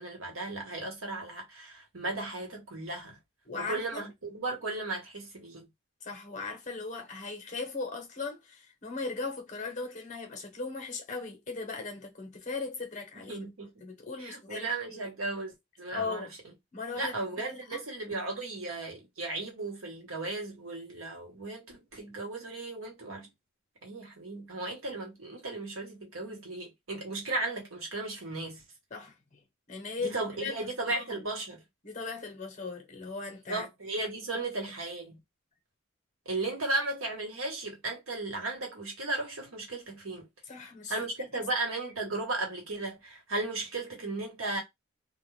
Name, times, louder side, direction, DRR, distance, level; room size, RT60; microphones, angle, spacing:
voice 1, 0.0-3.2 3.6-5.7 13.3-13.8 14.2-16.3 16.9-23.3 23.8-28.6 30.0-31.6 33.5-35.2 36.2-40.3 40.9-44.6, right 2 dB, 90° right, 1.2 m, -35 dB
voice 2, 3.4-4.0 6.0-13.5 13.8-15.0 15.9-16.3 16.7-17.8 28.9-29.4 29.7-30.6 30.9-31.3 31.8-33.7 40.5-41.0 41.3-41.4, left 4 dB, 35° left, 0.8 m, -38 dB
2.4 x 2.2 x 3.1 m
head